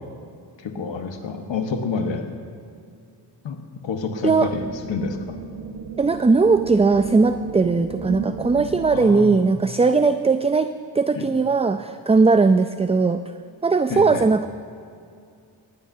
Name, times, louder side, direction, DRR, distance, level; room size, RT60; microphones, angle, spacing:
voice 1, 0.6-2.3 3.4-3.6 3.8-5.4 8.9-9.5 11.1-11.3 13.9-14.3, left 4 dB, 80° left, 5 dB, 1.4 m, -28 dB
sound 1, 4.2-9.2, right 5 dB, 80° right, 1.3 m, -34 dB
voice 2, 6.0-13.2 13.6-14.5, right 4 dB, 15° right, 10 dB, 0.4 m, -19 dB
17.5 x 17.0 x 2.7 m, 2.4 s
cardioid pair, 50°, 44 cm